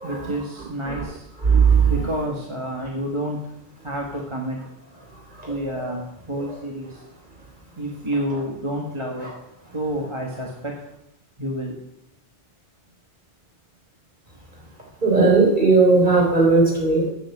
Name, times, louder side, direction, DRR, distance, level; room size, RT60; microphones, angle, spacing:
voice 1, 0.0-1.3 1.9-3.5 3.8-4.6 5.4-7.0 7.8-9.3 9.7-10.8 11.4-11.8, right 1 dB, 25° right, -1 dB, 1.6 m, -29 dB
voice 2, 1.4-1.9 5.4-5.8 15.0-17.1, right 4 dB, 45° right, -3 dB, 3.9 m, -17 dB
9.0 x 7.3 x 7.9 m, 0.82 s
omnidirectional pair, 1.1 m